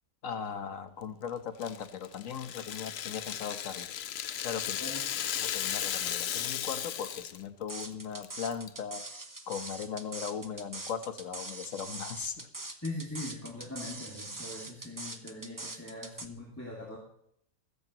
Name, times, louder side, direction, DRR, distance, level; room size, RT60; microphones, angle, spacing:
voice 1, 0.2-3.9 4.4-4.8 5.4-9.0 9.5-12.5, left 7 dB, 80° left, 9 dB, 1.5 m, -38 dB
Rattle (instrument), 1.6-7.4 7.7-7.8 8.2-8.7, left 10 dB, 60° left, 0.8 m, -35 dB
sound 1, 7.7-16.3, right 2 dB, 15° right, 0.8 m, -42 dB
voice 2, 12.8-17.0, left 2 dB, 10° left, -3 dB, 2.4 m, -41 dB
15.0 x 14.0 x 3.0 m, 0.73 s
omnidirectional pair, 1.4 m